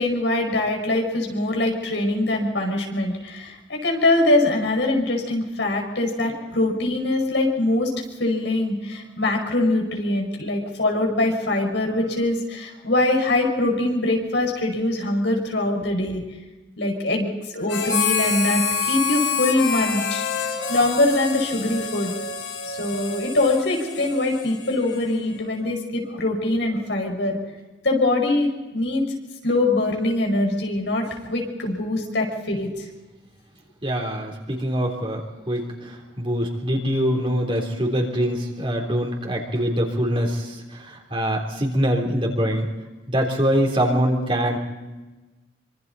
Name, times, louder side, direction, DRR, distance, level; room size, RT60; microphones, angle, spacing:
voice 1, 0.0-7.9 8.2-16.2 16.8-20.2 20.7-22.1 22.6-27.4 27.8-29.1 29.4-32.7, left 2 dB, 75° left, 1 dB, 5.6 m, -23 dB
Harmonica, 17.7-25.4, left 6 dB, 90° left, 4.5 m, -27 dB
voice 2, 33.8-42.7 43.1-44.6, equal, 30° right, 1 dB, 3.6 m, -24 dB
26.5 x 25.5 x 4.2 m, 1.2 s
head